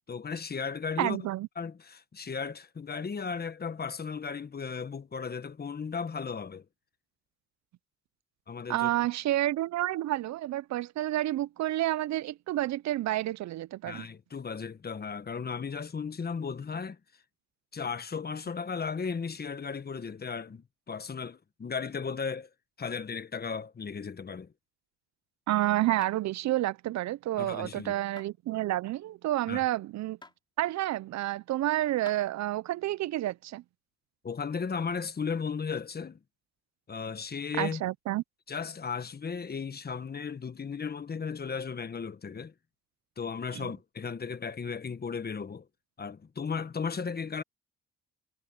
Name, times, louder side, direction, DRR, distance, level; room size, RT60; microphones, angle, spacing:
voice 1, 0.1-1.2 1.6-6.6 8.5-8.9 13.8-17.0 17.7-22.5 22.8-24.5 27.4-28.0 29.5-29.6 34.2-36.2 36.9-37.8 38.5-42.5 43.2-45.7 46.0-47.4, left 5 dB, 30° left, 1.3 m, -35 dB
voice 2, 1.0-1.5 8.7-14.0 25.5-30.2 30.6-33.6 37.6-38.2 43.5-43.7, right 15 dB, 65° right, 0.5 m, -29 dB
sound 1, 26.0-26.2 28.2-28.4 30.2-30.4 32.1-32.2, left 2 dB, 15° left, 3.9 m, -48 dB
cardioid pair, 90°, 30 cm